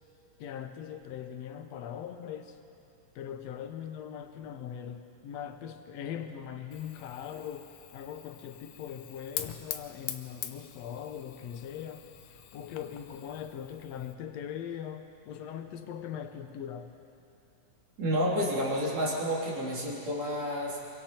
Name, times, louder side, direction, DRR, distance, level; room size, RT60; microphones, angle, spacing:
voice 1, 0.4-2.6 3.2-16.9, left 9 dB, 65° left, 7 dB, 2.0 m, -41 dB
Fire, 6.7-14.1, left 11 dB, 80° left, 2.3 m, -44 dB
voice 2, 18.0-20.8, equal, 60° right, -5 dB, 4.6 m, -30 dB
25.5 x 23.0 x 4.5 m, 2.7 s
omnidirectional pair, 3.5 m